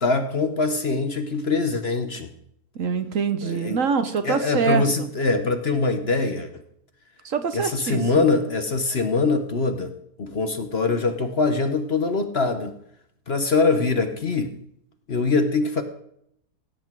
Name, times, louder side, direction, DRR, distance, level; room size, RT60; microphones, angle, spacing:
voice 1, 0.0-2.3 3.4-3.8 4.2-6.5 7.5-12.7 13.3-14.5 15.1-15.8, left 3 dB, 45° left, 8 dB, 1.1 m, -23 dB
voice 2, 2.7-5.1 7.2-8.3, right 6 dB, 55° right, 10 dB, 1.2 m, -25 dB
16.5 x 7.9 x 4.6 m, 0.72 s
omnidirectional pair, 1.7 m